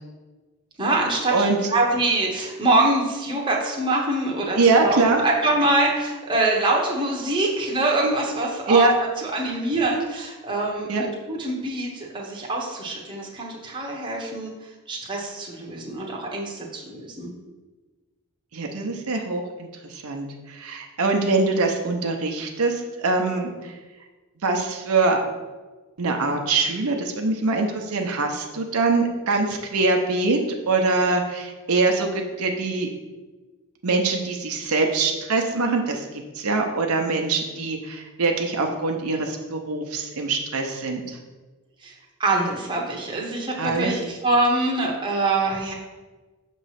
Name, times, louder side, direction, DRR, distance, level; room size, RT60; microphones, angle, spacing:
voice 1, 0.8-17.3 41.8-41.9 42.2-45.7, right 2 dB, 20° right, -2 dB, 0.9 m, -24 dB
voice 2, 4.6-5.2 8.7-8.9 10.9-11.0 18.5-23.7 24.4-25.2 26.0-30.4 30.7-32.9 33.8-36.1 36.3-41.2 43.6-43.9, right 3 dB, 80° right, 2 dB, 0.7 m, -23 dB
6.5 x 3.0 x 5.7 m, 1.3 s
head